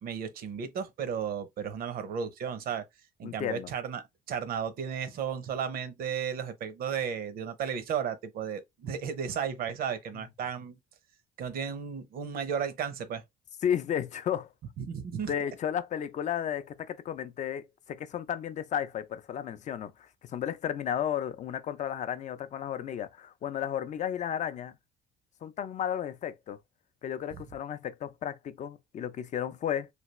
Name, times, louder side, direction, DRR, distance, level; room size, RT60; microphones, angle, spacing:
voice 1, 0.0-2.8 3.2-4.0 4.3-10.8 11.4-13.2 14.8-15.3, right 7 dB, 60° right, 0.7 m, -34 dB
voice 2, 3.2-3.7 10.1-10.2 13.6-14.5 15.2-24.7 25.4-26.6 27.0-29.9, left 9 dB, 45° left, 0.4 m, -33 dB
3.3 x 2.3 x 2.9 m
cardioid pair, 110°, 17 cm